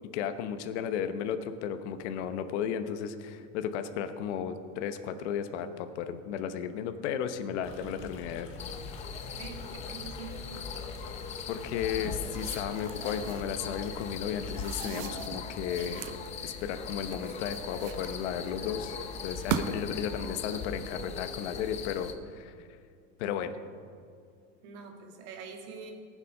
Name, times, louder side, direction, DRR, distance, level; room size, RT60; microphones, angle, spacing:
voice 1, 0.1-8.5 11.5-16.1 16.4-22.7 23.2-23.6, left 8 dB, 60° left, 9 dB, 1.0 m, -34 dB
Stream, 7.6-14.8, left 4 dB, 35° left, 1.4 m, -46 dB
sound 1, 8.6-22.1, left 5 dB, 20° left, 0.6 m, -40 dB
voice 2, 9.3-10.5 19.5-19.8 24.6-25.9, right 6 dB, 60° right, 2 dB, 2.2 m, -45 dB
sound 2, 11.8-13.5 14.4-16.3 16.9-18.5 19.2-20.0, right 9 dB, 85° right, 1.0 m, -39 dB
19.0 x 7.5 x 5.4 m, 2.2 s
supercardioid pair, 160°, 38 cm